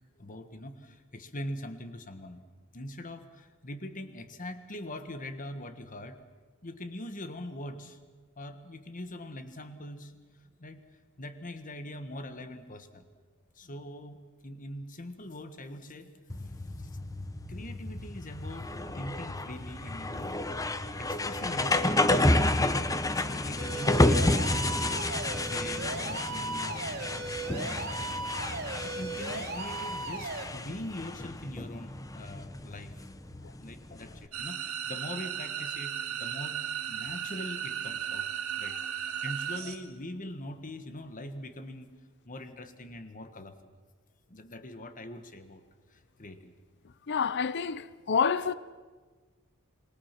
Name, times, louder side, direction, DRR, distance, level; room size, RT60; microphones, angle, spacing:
voice 1, 0.2-2.4 2.7-6.2 6.6-8.0 8.4-10.2 10.6-10.8 11.2-13.1 13.5-14.2 14.4-16.1 16.4-16.5 16.8-17.0 17.5-20.3 21.0-22.7 23.1-27.8 28.8-33.0 33.5-36.6 36.9-41.9 42.2-43.7 44.3-45.6 45.9-46.5, left 1 dB, 40° left, 1.5 m, -42 dB
sound 1, 16.3-34.2, left 1 dB, 15° left, 0.8 m, -30 dB
sound 2, 23.6-30.4, right 3 dB, 50° right, 2.7 m, -37 dB
sound 3, 34.3-39.8, right 9 dB, 85° right, 2.3 m, -35 dB
voice 2, 47.1-48.5, left 6 dB, 55° left, 0.6 m, -28 dB
27.0 x 21.0 x 6.0 m
head